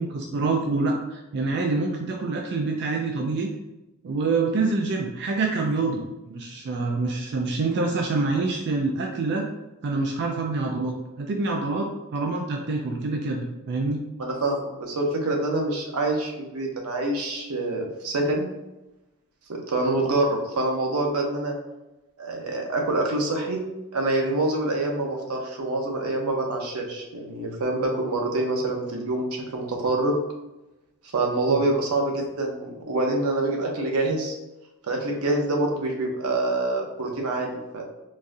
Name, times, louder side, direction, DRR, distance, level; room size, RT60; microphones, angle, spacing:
voice 1, 0.0-3.5 4.0-9.5 9.8-14.0 31.5-31.6, right 3 dB, 50° right, 1 dB, 0.3 m, -26 dB
voice 2, 14.2-18.5 19.5-21.6 22.2-23.6 23.9-30.2 31.1-34.3 34.9-37.8, right 2 dB, 80° right, 1 dB, 0.7 m, -26 dB
3.9 x 2.4 x 2.5 m, 0.97 s
head